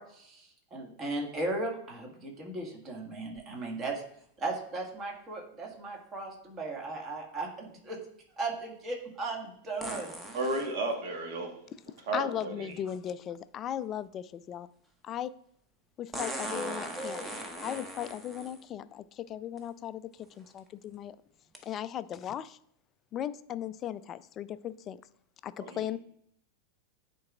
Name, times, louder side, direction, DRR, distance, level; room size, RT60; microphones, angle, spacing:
voice 1, 0.0-4.0 4.4-8.0 8.4-10.1 16.3-16.7 17.0-17.3, right 2 dB, 25° right, 0 dB, 1.7 m, -37 dB
sound 1, 3.4-3.5 9.8-10.7 12.7-12.8 16.1-18.6 19.6-19.7 20.3-20.6 21.5-21.6, right 1 dB, 10° right, 1.0 m, -39 dB
voice 2, 10.3-11.6 12.1-12.8 25.6-25.9, right 2 dB, 50° right, 2 dB, 1.3 m, -33 dB
voice 3, 12.1-14.7 15.0-15.3 16.0-17.2 17.6-20.1 20.4-21.2 21.6-22.6 23.1-25.0 25.4-26.0, left 10 dB, 30° left, 15 dB, 0.3 m, -37 dB
10.5 x 4.5 x 2.4 m, 0.68 s
figure-of-eight pair, 90°, 0 cm